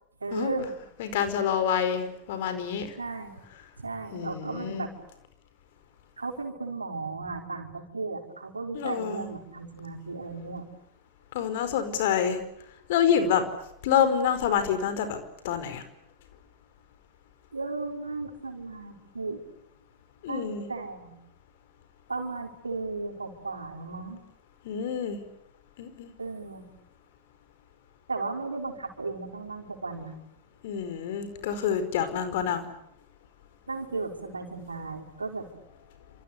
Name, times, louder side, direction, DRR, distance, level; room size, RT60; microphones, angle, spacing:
voice 1, 0.2-0.7 3.0-3.3 3.8-4.9 6.2-10.7 17.5-19.4 20.3-21.2 22.1-24.2 26.2-26.7 28.1-30.1 32.3-32.5 33.7-35.5, right 3 dB, 80° right, 3 dB, 5.0 m, -35 dB
voice 2, 1.0-2.9 4.1-4.9 8.7-9.3 11.3-12.4 12.9-13.4 13.8-15.2 15.4-15.8 20.2-20.7 24.6-25.2 25.8-26.1 30.6-32.7, left 8 dB, 55° left, 10 dB, 4.8 m, -27 dB
29.0 x 27.5 x 6.9 m, 0.81 s
figure-of-eight pair, 90°, 0 cm